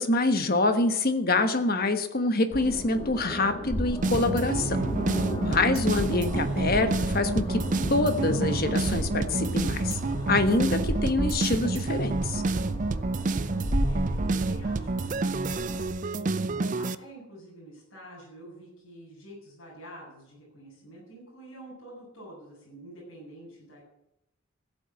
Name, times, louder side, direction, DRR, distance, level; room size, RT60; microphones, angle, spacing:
voice 1, 0.0-4.8 5.4-7.6 7.9-10.0 10.3-12.4, left 2 dB, 45° left, 8 dB, 1.3 m, -26 dB
sound 1, 2.5-15.9, equal, 25° left, 2.4 m, -33 dB
sound 2, 4.0-16.9, right 3 dB, 35° right, 0.4 m, -29 dB
voice 2, 13.8-16.4 16.7-23.8, right 1 dB, 60° left, -5 dB, 7.7 m, -48 dB
15.5 x 7.7 x 8.3 m, 0.84 s
head